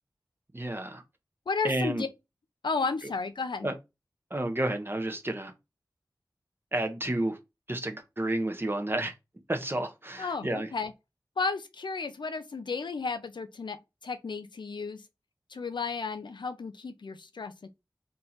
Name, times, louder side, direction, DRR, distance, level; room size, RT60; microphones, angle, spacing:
voice 1, 0.5-1.0 1.6-2.1 3.6-3.7 4.3-5.5 6.7-7.4 7.7-9.1 9.5-10.7, right 1 dB, 30° right, 1.0 m, -31 dB
voice 2, 1.5-2.1 2.6-3.7 10.2-10.9 11.4-13.8 14.0-15.0 15.5-17.7, left 4 dB, 80° left, 0.7 m, -33 dB
3.7 x 2.9 x 3.9 m
cardioid pair, 40°, 8 cm